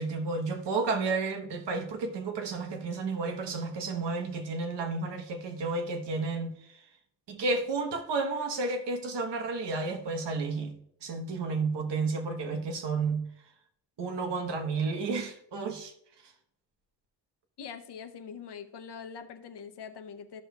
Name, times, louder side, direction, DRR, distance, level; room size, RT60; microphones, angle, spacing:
voice 1, 0.0-6.9 7.3-13.3 14.0-15.9 16.2-16.3, right 3 dB, 75° right, 1.1 m, -32 dB
voice 2, 17.6-20.4, left 6 dB, 70° left, 0.8 m, -43 dB
13.5 x 6.4 x 2.3 m
wide cardioid pair, 175°, 42 cm